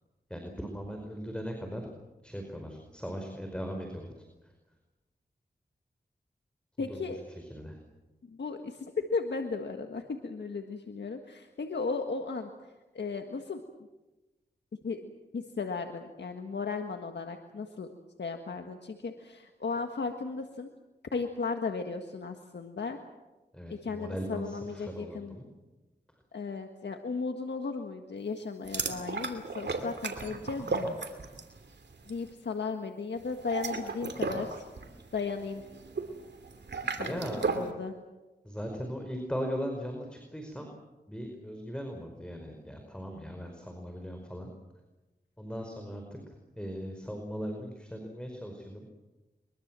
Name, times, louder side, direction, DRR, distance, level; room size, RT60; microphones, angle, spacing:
voice 1, 0.3-1.8 2.2-4.1 6.8-7.8 23.5-25.5 37.0-37.4 38.4-40.7 41.1-44.5 45.4-48.9, equal, 5° left, 3 dB, 5.0 m, -39 dB
voice 2, 6.8-7.2 8.2-12.5 12.9-13.6 14.8-17.9 18.2-20.7 21.1-23.0 23.7-25.4 26.3-30.9 32.1-34.7 35.1-35.6 36.9-37.9, left 4 dB, 80° left, 5 dB, 1.7 m, -35 dB
sound 1, 28.6-31.6 31.8-32.2 33.3-37.7, right 3 dB, 80° right, 2.8 m, -35 dB
23.0 x 23.0 x 7.6 m, 1.1 s
cardioid pair, 45°, 18 cm